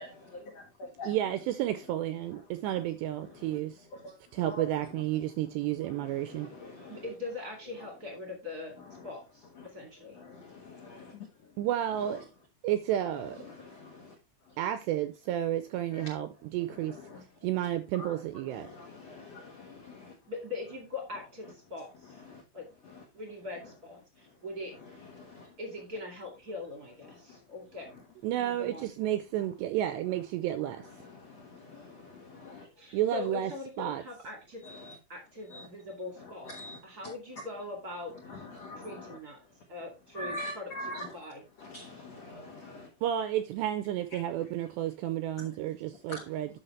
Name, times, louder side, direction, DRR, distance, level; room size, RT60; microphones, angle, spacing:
voice 1, 0.0-1.1 3.4-3.6 3.9-4.2 4.5-4.7 5.9-7.0 9.6-9.7 10.1-11.3 13.4-14.1 15.9-16.1 17.1-17.2 18.0-18.1 18.5-20.1 22.3-22.4 25.1-25.5 27.3-27.4 31.0-32.7 34.6-34.9 35.5-35.7 36.5-36.8 38.3-39.2 40.1-41.1 41.6-42.9 45.4-45.5 46.1-46.2, left 1 dB, 80° left, 1.4 m, -44 dB
voice 2, 1.0-3.9 4.3-6.5 11.6-12.2 12.6-13.5 14.6-17.0 17.4-18.7 28.2-30.9 32.9-33.5 33.8-34.0 43.0-46.6, right 12 dB, 85° right, 2.5 m, -31 dB
voice 3, 6.9-10.2 20.3-22.2 22.5-22.6 23.1-24.7 25.6-27.9 28.3-28.9 32.8-34.6 35.1-36.5 36.8-38.5 38.7-39.4 39.7-41.4, left 3 dB, 40° right, 1.3 m, -42 dB
10.0 x 6.5 x 3.2 m
omnidirectional pair, 5.6 m